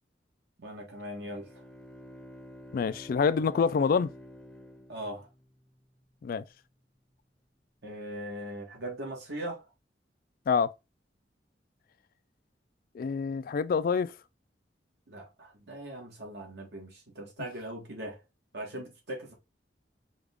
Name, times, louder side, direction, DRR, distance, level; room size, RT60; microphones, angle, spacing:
voice 1, 0.6-1.6 4.9-5.3 7.8-9.6 15.1-18.2 18.5-19.3, right 1 dB, 70° right, 1.5 m, -40 dB
Bowed string instrument, 1.1-5.7, equal, 5° left, 0.7 m, -49 dB
voice 2, 2.7-4.1 6.2-6.4 10.5-10.7 12.9-14.1, left 5 dB, 55° left, 0.3 m, -26 dB
5.1 x 2.4 x 3.4 m
head